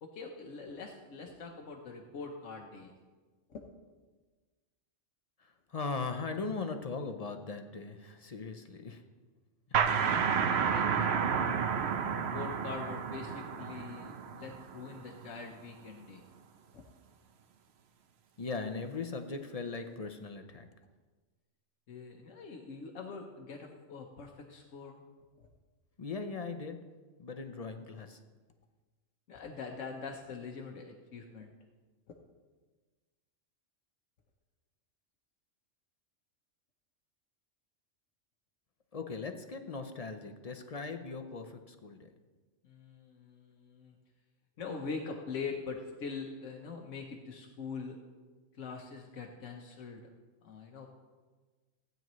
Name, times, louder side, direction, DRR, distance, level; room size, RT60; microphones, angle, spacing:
voice 1, 0.0-2.9 3.5-3.6 9.9-10.2 10.7-11.3 11.6-16.2 16.7-16.8 21.9-25.0 25.4-25.5 29.3-31.5 42.6-43.9 44.6-48.0 48.5-50.1 50.4-50.9, left 5 dB, 90° left, 1 dB, 1.3 m, -43 dB
voice 2, 5.4-9.0 9.7-9.9 18.4-20.7 26.0-26.8 27.2-28.2 38.9-42.1, left 4 dB, 40° left, 6 dB, 0.6 m, -39 dB
sound 1, 9.7-15.2, right 7 dB, 65° right, 0.9 m, -31 dB
16.0 x 9.2 x 3.1 m, 1.3 s
omnidirectional pair, 1.3 m